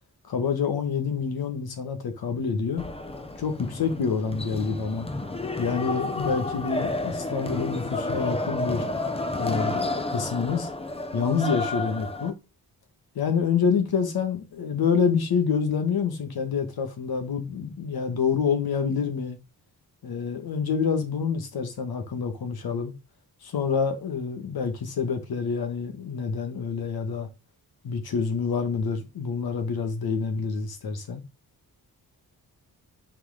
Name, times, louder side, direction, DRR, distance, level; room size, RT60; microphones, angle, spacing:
voice 1, 0.3-2.9 3.4-5.1 5.6-8.8 9.4-10.7 11.1-12.4 13.2-19.4 20.0-22.9 23.4-27.3 27.8-31.2, left 6 dB, 80° left, 1.8 m, -27 dB
sound 1, 2.8-12.3, left 2 dB, 15° left, 0.8 m, -31 dB
6.1 x 4.8 x 5.0 m
wide cardioid pair, 130°, 36 cm